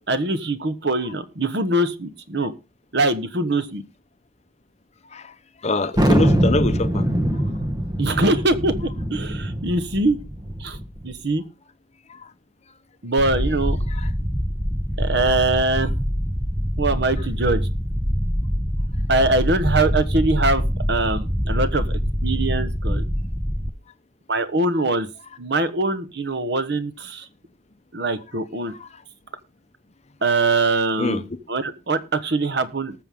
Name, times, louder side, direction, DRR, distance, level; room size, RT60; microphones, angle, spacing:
voice 1, 0.1-2.5 2.9-3.8 8.0-10.2 10.6-10.8 11.0-11.4 13.0-13.8 15.0-15.9 16.8-17.6 19.1-23.0 24.3-25.1 25.4-27.3 27.9-28.7 30.2-32.9, right 2 dB, 65° right, 1.3 m, -23 dB
voice 2, 5.6-7.0 12.1-12.2 28.8-28.9 31.0-31.2, left 2 dB, 35° left, 0.9 m, -24 dB
Thunder, 6.0-11.1, equal, 20° right, 1.2 m, -23 dB
sound 1, 13.2-23.7, equal, ahead, 0.7 m, -24 dB
19.5 x 6.8 x 3.7 m
head